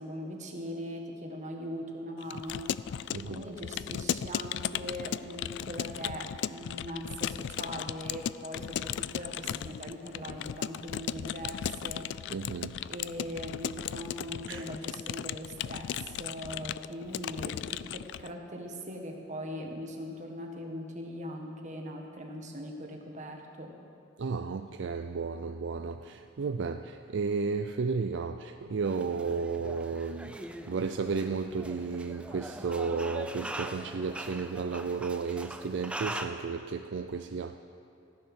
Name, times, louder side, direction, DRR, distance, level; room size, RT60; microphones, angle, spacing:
voice 1, 0.0-12.1 12.9-23.7, equal, 40° right, 2 dB, 1.6 m, -40 dB
Keyboard (musical) / Computer keyboard, 2.2-18.3, left 9 dB, 65° left, 0.3 m, -36 dB
voice 2, 3.1-3.5 12.3-12.8 14.5-14.6 24.2-37.6, right 4 dB, 65° right, 7 dB, 0.4 m, -33 dB
sound 1, 28.8-36.3, right 1 dB, 5° right, 0.6 m, -41 dB
15.0 x 10.5 x 6.3 m, 2.7 s
head